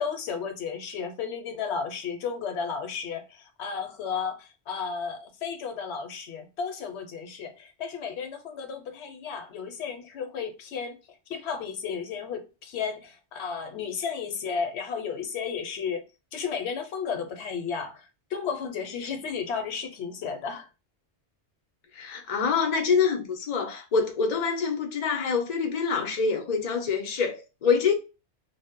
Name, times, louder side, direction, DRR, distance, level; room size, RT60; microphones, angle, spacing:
voice 1, 0.0-11.0 11.3-16.0 16.3-18.1 18.3-20.7, left 6 dB, 75° left, 0.8 m, -33 dB
voice 2, 22.0-27.9, left 5 dB, 50° left, 0.5 m, -26 dB
2.0 x 2.0 x 3.4 m
omnidirectional pair, 1.1 m